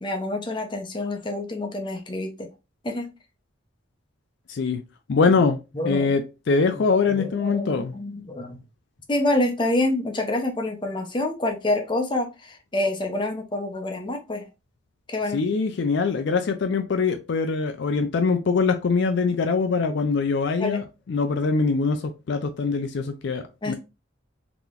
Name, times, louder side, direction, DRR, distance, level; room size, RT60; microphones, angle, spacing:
voice 1, 0.0-2.5 2.8-3.1 5.2-5.3 5.7-6.2 6.5-8.6 9.1-14.5 15.1-15.4 20.6-20.8 23.6-23.7, left 1 dB, 25° left, 0.6 m, -27 dB
voice 2, 4.5-4.8 5.1-5.6 5.9-7.9 15.3-20.8 21.1-22.0 22.3-23.7, left 4 dB, 60° left, 0.4 m, -23 dB
3.7 x 2.9 x 2.4 m
head